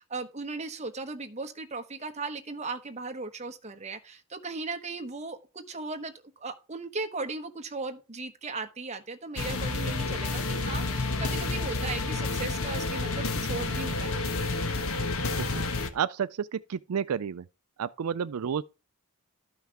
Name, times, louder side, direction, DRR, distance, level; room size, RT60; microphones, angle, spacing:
voice 1, 0.0-14.2, right 3 dB, 30° right, 1.1 m, -37 dB
sound 1, 9.4-15.9, left 3 dB, 65° left, 1.3 m, -30 dB
voice 2, 15.9-17.4 17.8-18.6, right 7 dB, 80° right, 0.4 m, -31 dB
12.5 x 5.7 x 4.7 m
head